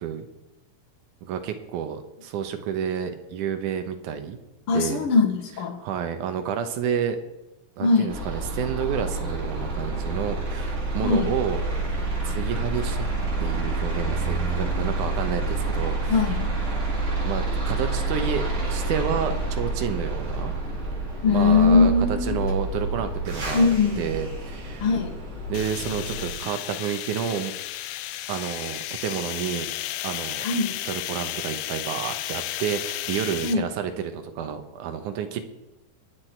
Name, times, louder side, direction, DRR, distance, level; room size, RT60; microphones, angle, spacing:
voice 1, 1.2-4.4 4.7-5.0 5.8-7.2 7.8-11.6 12.2-13.1 13.4-16.2 17.2-20.5 21.3-23.7 24.0-24.9 25.5-27.5 28.3-29.7 30.0-30.5 30.9-35.4, right 8 dB, 80° right, 8 dB, 2.5 m, -30 dB
voice 2, 4.7-5.8 7.8-8.2 11.0-11.3 16.1-16.5 21.2-22.4 23.5-24.0 24.8-25.2 30.4-30.7 33.4-33.6, left 4 dB, 50° left, 5 dB, 2.1 m, -21 dB
sound 1, 8.1-26.3, right 2 dB, 50° right, 4.4 m, -28 dB
sound 2, 25.5-33.5, left 14 dB, 85° left, 2.1 m, -33 dB
22.0 x 8.2 x 4.5 m, 0.97 s
omnidirectional pair, 3.6 m